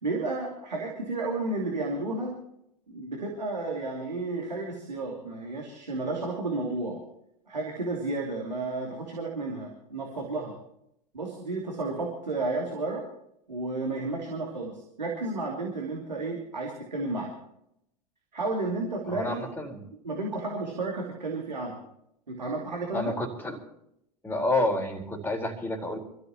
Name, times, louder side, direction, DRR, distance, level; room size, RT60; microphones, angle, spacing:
voice 1, 0.0-2.3 2.9-7.0 7.5-10.5 11.1-13.0 13.5-17.3 18.3-19.5 20.0-21.7 22.3-23.1, right 2 dB, 85° right, -1 dB, 2.7 m, -32 dB
voice 2, 19.1-19.9 22.9-23.6 24.2-26.0, left 1 dB, 10° left, 1 dB, 4.3 m, -29 dB
27.0 x 14.0 x 3.0 m, 0.76 s
figure-of-eight pair, 80°, 21 cm